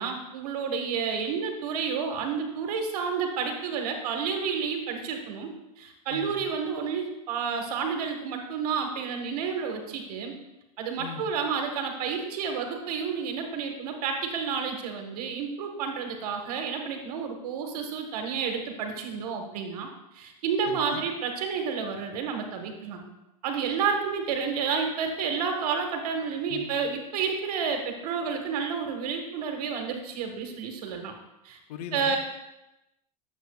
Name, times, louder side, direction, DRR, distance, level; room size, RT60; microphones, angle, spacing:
voice 1, 0.0-10.3 10.8-19.9 20.1-23.0 23.4-31.1 31.4-31.6 31.9-32.2, right 6 dB, 75° right, 4 dB, 1.4 m, -30 dB
voice 2, 6.1-6.5 11.0-11.3 20.7-21.0 26.5-26.8 31.7-32.2, left 7 dB, 75° left, 7 dB, 0.9 m, -40 dB
9.3 x 7.3 x 2.3 m, 0.95 s
supercardioid pair, 115°, 20 cm